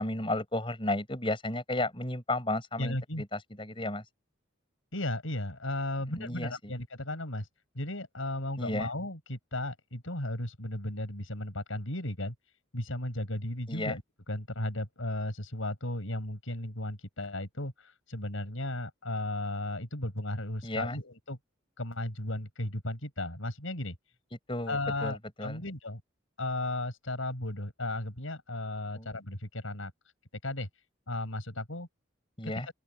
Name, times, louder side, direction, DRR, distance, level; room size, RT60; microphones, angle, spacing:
voice 1, 0.0-4.0 6.2-6.7 8.6-8.9 13.7-13.9 20.6-21.0 24.5-25.6 28.9-29.1 32.4-32.7, left 1 dB, 25° left, 6.0 m, -33 dB
voice 2, 2.8-3.2 4.9-7.5 7.7-12.3 12.7-14.0 14.3-21.4 21.8-24.0 24.7-26.0 26.4-29.9 30.4-30.7 31.1-31.9 32.4-32.5, left 1 dB, 85° left, 6.7 m, -35 dB
open air
head